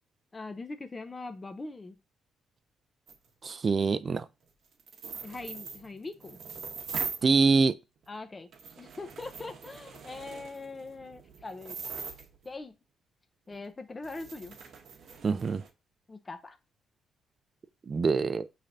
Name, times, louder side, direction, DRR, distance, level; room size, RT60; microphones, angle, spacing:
voice 1, 0.3-2.0 5.2-6.4 8.1-8.5 8.8-12.1 12.4-12.7 13.5-14.6 16.1-16.6, left 3 dB, 25° left, 0.5 m, -42 dB
sound 1, 3.1-3.2 4.8-7.3 8.0-8.1 8.5-12.5 13.5-13.6 14.0-15.7, right 6 dB, 65° right, 0.8 m, -41 dB
voice 2, 3.4-4.3 7.2-7.7 15.2-15.6 17.9-18.5, right 4 dB, 40° right, 0.4 m, -25 dB
5.5 x 3.2 x 2.6 m
cardioid pair, 90°, 0 cm